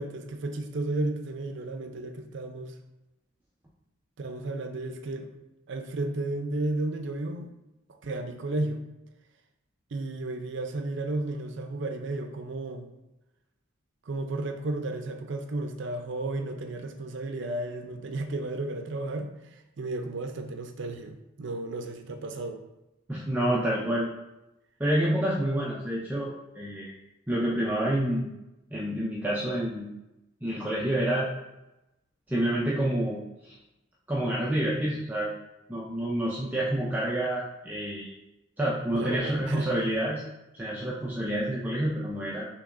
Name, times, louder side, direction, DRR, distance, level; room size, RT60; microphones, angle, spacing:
voice 1, 0.0-2.8 4.2-5.3 5.7-7.5 8.0-8.8 9.9-12.9 14.1-22.6 38.9-39.8, right 2 dB, 65° right, 6 dB, 0.5 m, -33 dB
voice 2, 23.1-24.1 24.8-26.9 27.3-28.3 28.7-29.9 30.4-31.3 32.3-33.5 34.1-35.3 35.7-38.1 38.6-40.2 40.5-42.5, right 1 dB, 10° right, -6 dB, 0.5 m, -28 dB
6.5 x 3.0 x 2.5 m, 0.94 s
head